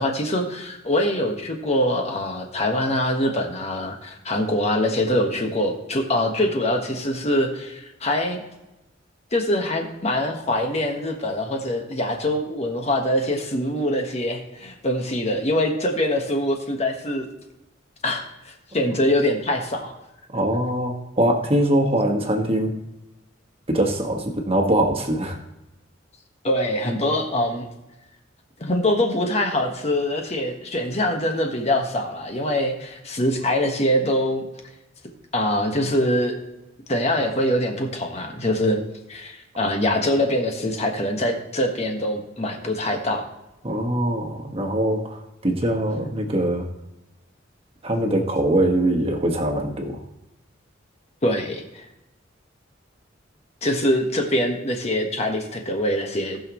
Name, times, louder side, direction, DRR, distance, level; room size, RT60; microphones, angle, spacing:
voice 1, 0.0-8.4 9.3-17.2 18.0-19.9 26.4-27.6 28.6-34.5 35.3-36.4 36.9-38.8 39.1-43.3 51.2-51.8 53.6-56.4, left 1 dB, 35° left, 3 dB, 1.4 m, -24 dB
voice 2, 20.3-22.8 23.7-25.4 43.6-46.7 47.8-50.0, right 1 dB, 30° right, 2 dB, 1.5 m, -22 dB
18.5 x 6.3 x 3.1 m, 0.94 s
head